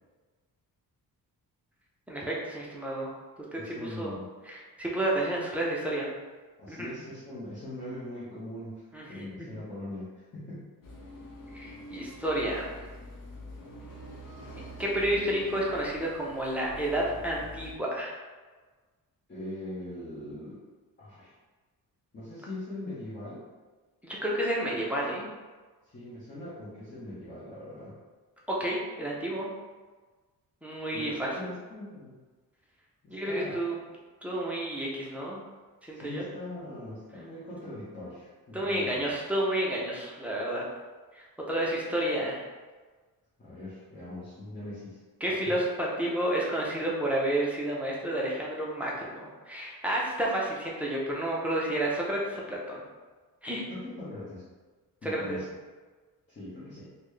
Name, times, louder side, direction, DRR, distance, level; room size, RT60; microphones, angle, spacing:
voice 1, 2.1-3.1 3.5-4.1 4.5-6.1 6.7-6.9 8.9-9.5 11.5-12.8 14.8-18.1 24.0-25.3 28.5-29.5 30.6-31.3 33.1-33.7 34.2-35.4 35.9-36.3 38.5-40.6 41.2-42.4 45.2-52.8 53.4-53.6 55.0-55.4, right 1 dB, 5° right, -5 dB, 0.5 m, -30 dB
voice 2, 3.5-4.3 6.6-8.7 9.1-10.6 19.3-20.6 21.0-21.3 22.1-23.4 25.8-28.0 30.9-32.1 33.0-33.6 35.9-39.0 43.4-45.0 45.3-45.6 53.7-54.4 55.0-55.5 56.3-56.9, left 1 dB, 30° left, -11 dB, 0.9 m, -41 dB
sound 1, 10.8-17.7, left 1 dB, 60° left, 0.8 m, -45 dB
3.9 x 2.2 x 3.2 m, 1.3 s
wide cardioid pair, 165°, 37 cm